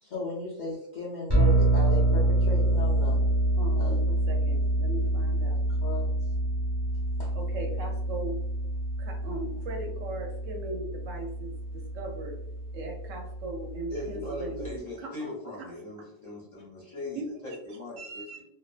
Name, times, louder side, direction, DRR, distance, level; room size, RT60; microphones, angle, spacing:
voice 1, 0.0-3.2 3.8-4.0 5.8-6.1 7.2-7.3, left 2 dB, 85° left, -6 dB, 0.4 m, -36 dB
sound 1, 1.3-14.7, right 2 dB, 25° right, 0.6 m, -27 dB
voice 2, 3.6-5.6 7.3-8.4 9.0-12.4 12.7-15.7 17.2-17.3 18.0-18.4, right 2 dB, 70° right, 2 dB, 0.9 m, -39 dB
voice 3, 13.9-18.4, left 1 dB, 40° left, -7 dB, 0.6 m, -39 dB
2.3 x 2.2 x 2.4 m, 0.79 s
omnidirectional pair, 1.5 m